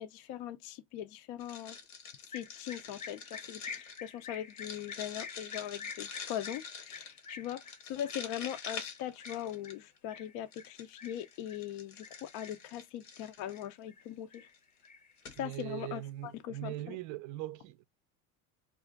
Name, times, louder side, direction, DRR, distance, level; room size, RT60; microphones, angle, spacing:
voice 1, 0.0-1.8 2.3-14.5 15.4-17.0, left 11 dB, 55° left, 0.5 m, -41 dB
sound 1, 1.4-10.0 10.5-13.7 14.3-14.6 14.8-14.9 15.2-15.6, left 6 dB, 85° left, 1.1 m, -46 dB
sound 2, 2.3-11.7 12.0-12.7 13.1-14.0 14.3-15.7, left 6 dB, 15° left, 0.7 m, -48 dB
voice 2, 15.4-17.8, right 15 dB, 45° right, 0.4 m, -41 dB
2.5 x 2.4 x 3.8 m
hypercardioid pair, 85°, 44 cm